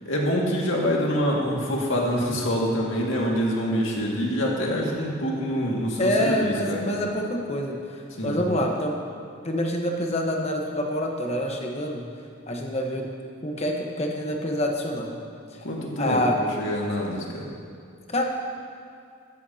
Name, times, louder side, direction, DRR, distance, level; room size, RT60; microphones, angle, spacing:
voice 1, 0.0-6.8 8.2-8.4 15.6-17.5, equal, 70° left, -2 dB, 2.0 m, -26 dB
voice 2, 6.0-9.0 9.4-12.1 12.5-13.1 13.4-15.2 16.0-16.4 18.1-18.2, left 1 dB, 30° left, 1 dB, 1.1 m, -26 dB
14.0 x 13.0 x 2.8 m, 2.3 s
head